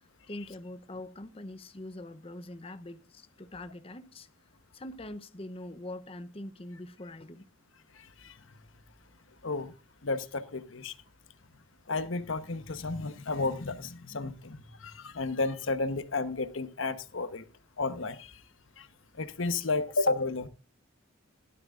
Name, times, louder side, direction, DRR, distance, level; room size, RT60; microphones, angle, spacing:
voice 1, 0.0-4.3 4.7-7.5, left 1 dB, 30° left, 0.8 m, -43 dB
voice 2, 10.0-10.9 11.9-17.4 17.8-18.3 18.8-18.9 19.2-20.5, left 3 dB, 85° left, 1.1 m, -32 dB
16.5 x 12.0 x 2.5 m
head